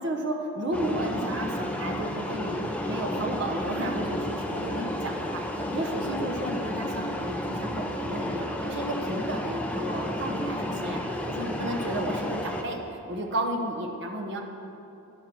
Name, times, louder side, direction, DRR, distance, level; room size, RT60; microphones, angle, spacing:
voice 1, 0.0-5.4 5.7-11.0 11.3-12.8 13.1-14.4, right 1 dB, 50° right, 1 dB, 1.0 m, -32 dB
sound 1, 0.7-12.6, left 1 dB, 5° left, 0.6 m, -32 dB
12.5 x 10.5 x 4.3 m, 2.9 s
head